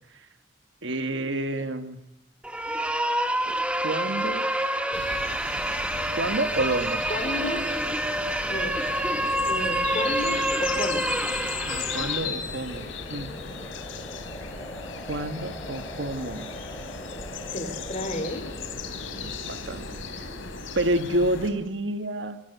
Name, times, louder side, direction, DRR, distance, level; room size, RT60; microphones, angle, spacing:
voice 1, 0.8-2.0 3.8-4.5 6.1-7.0 11.7-13.3 15.1-16.5 19.1-20.2 20.7-22.4, right 1 dB, 60° right, 10 dB, 1.6 m, -29 dB
sound 1, 2.4-12.3, right 1 dB, 5° right, 1.5 m, -27 dB
sound 2, 4.9-21.5, left 5 dB, 75° left, 3.5 m, -36 dB
voice 2, 7.1-7.6 8.5-8.8 9.5-11.1 17.5-18.4, left 1 dB, 35° left, 8 dB, 3.8 m, -32 dB
sound 3, 9.1-20.7, equal, 15° left, 3.1 m, -43 dB
26.0 x 24.0 x 8.1 m, 0.83 s
head